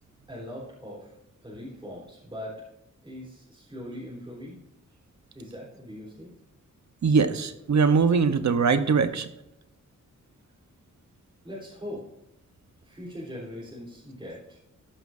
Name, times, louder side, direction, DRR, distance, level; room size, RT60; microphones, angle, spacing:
voice 1, 0.3-1.1 1.4-2.6 3.0-4.6 5.3-6.3 11.4-12.1 12.8-14.6, equal, 15° right, -7 dB, 3.8 m, -40 dB
voice 2, 7.0-9.3, right 5 dB, 65° right, 10 dB, 1.0 m, -22 dB
13.5 x 11.0 x 2.7 m, 0.86 s
wide cardioid pair, 165°, 31 cm